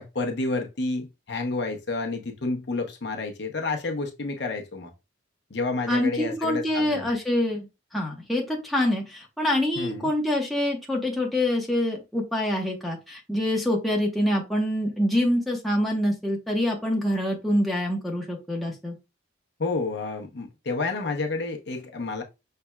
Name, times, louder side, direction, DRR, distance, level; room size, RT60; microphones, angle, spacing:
voice 1, 0.0-4.9 5.5-7.1 9.8-10.1 19.6-22.2, left 3 dB, 55° left, 0.7 m, -30 dB
voice 2, 5.9-7.7 7.9-18.9, left 1 dB, ahead, 0.9 m, -25 dB
5.7 x 3.3 x 2.2 m
head